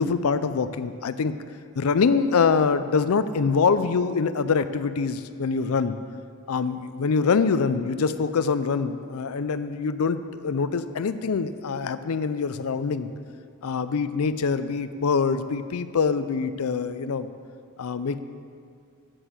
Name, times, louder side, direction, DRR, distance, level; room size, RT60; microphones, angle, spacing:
voice 1, 0.0-1.4 1.8-6.0 6.5-13.1 13.6-17.3 17.8-18.2, left 5 dB, 85° left, 12 dB, 0.5 m, -24 dB
8.1 x 7.8 x 7.9 m, 2.2 s
head